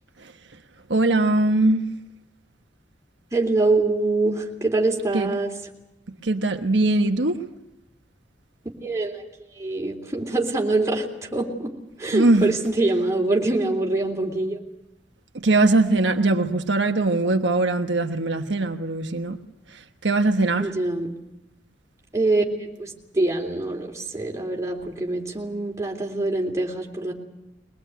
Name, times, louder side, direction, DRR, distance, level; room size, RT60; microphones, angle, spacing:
voice 1, 0.9-1.8 5.1-5.3 6.2-7.4 12.1-12.4 15.3-19.4 20.0-20.7, right 2 dB, 80° right, 5 dB, 1.3 m, -21 dB
voice 2, 3.3-5.5 8.8-9.2 9.6-11.7 12.0-14.6 20.6-21.1 22.1-27.1, right 2 dB, 15° right, 0 dB, 3.4 m, -24 dB
22.5 x 20.0 x 9.4 m, 0.88 s
head